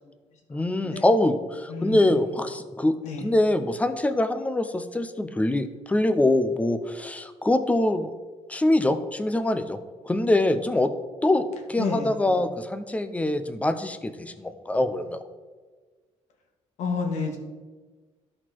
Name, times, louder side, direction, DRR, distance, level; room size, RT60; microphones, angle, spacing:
voice 1, 0.5-3.0 3.2-8.1 8.5-9.8 10.1-10.9 11.2-15.2, left 1 dB, 10° left, 10 dB, 0.5 m, -24 dB
voice 2, 1.7-2.1 3.0-3.3 11.8-12.4 16.8-17.4, left 4 dB, 90° left, 2 dB, 1.7 m, -30 dB
13.0 x 4.3 x 4.5 m, 1.4 s
cardioid pair, 140°, 12 cm